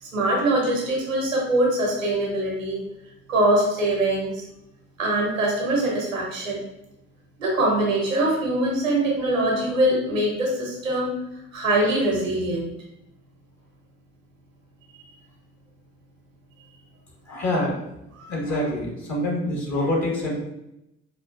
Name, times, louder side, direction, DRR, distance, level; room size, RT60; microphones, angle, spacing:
voice 1, 0.0-2.8 3.3-4.4 5.0-6.6 7.4-11.1 11.5-12.7 18.2-18.3, right 1 dB, 90° right, -2 dB, 0.8 m, -23 dB
voice 2, 17.3-17.7 18.3-20.3, left 1 dB, 45° left, -3 dB, 1.5 m, -25 dB
4.5 x 2.4 x 2.4 m, 0.86 s
figure-of-eight pair, 45°, 38 cm